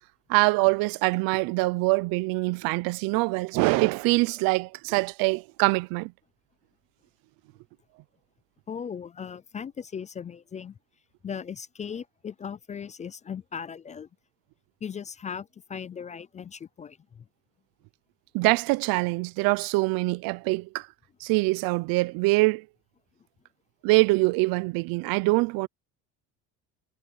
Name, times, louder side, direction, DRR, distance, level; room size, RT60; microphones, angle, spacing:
voice 1, 0.3-6.1 18.3-20.9 21.2-22.6 23.8-25.7, right 24 dB, 80° right, 0.7 m, -24 dB
voice 2, 8.7-10.8 11.2-14.1 14.8-17.2, left 7 dB, 20° left, 0.4 m, -38 dB
cardioid pair, 125°, 34 cm